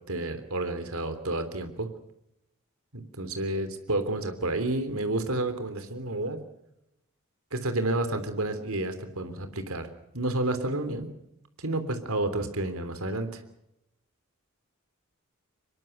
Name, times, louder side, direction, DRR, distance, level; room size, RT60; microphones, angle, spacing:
voice 1, 0.1-1.9 2.9-6.4 7.5-9.9 10.1-11.1 11.6-13.4, right 2 dB, 80° right, 9 dB, 3.3 m, -30 dB
25.5 x 21.5 x 6.7 m, 0.82 s
head